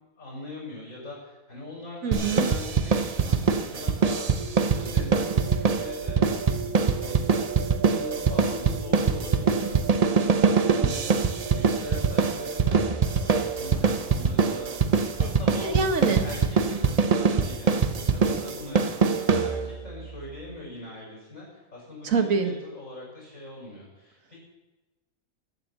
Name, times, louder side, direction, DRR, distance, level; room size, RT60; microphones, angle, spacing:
voice 1, 0.2-4.3 4.6-6.7 7.0-9.8 10.5-11.2 11.5-14.8 15.2-24.4, left 2 dB, 60° left, -3 dB, 6.5 m, -41 dB
voice 2, 2.0-2.5 10.8-11.2 15.2-15.3 15.6-16.2 22.0-22.5, right 5 dB, 70° right, 7 dB, 1.5 m, -26 dB
sound 1, 2.1-19.9, right 5 dB, 40° right, 0.5 m, -23 dB
sound 2, 4.4-16.1, right 6 dB, 85° right, 1.6 m, -38 dB
12.0 x 9.6 x 7.1 m, 1.1 s
omnidirectional pair, 1.5 m